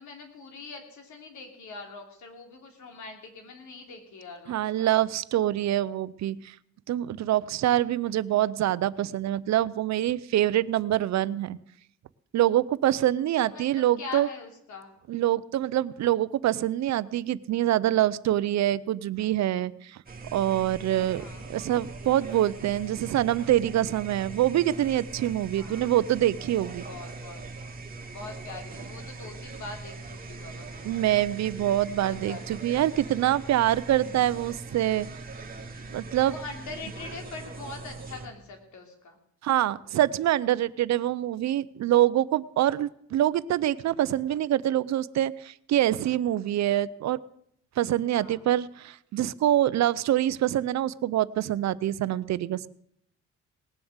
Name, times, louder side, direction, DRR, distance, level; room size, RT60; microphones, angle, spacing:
voice 1, 0.0-4.9 13.4-14.9 21.2-21.4 25.6-25.9 26.8-27.4 28.1-30.9 32.0-32.8 36.3-39.2 48.1-48.4, left 3 dB, 70° left, 3 dB, 3.3 m, -43 dB
voice 2, 4.5-6.5 6.9-11.6 12.3-14.3 15.1-20.0 20.3-21.2 21.5-26.8 30.8-35.1 35.9-36.3 39.4-47.2 47.8-52.7, right 13 dB, 65° right, 17 dB, 0.6 m, -25 dB
sound 1, 20.1-38.3, right 3 dB, 30° right, 2.4 m, -41 dB
19.0 x 7.1 x 8.0 m, 0.72 s
cardioid pair, 90°, 30 cm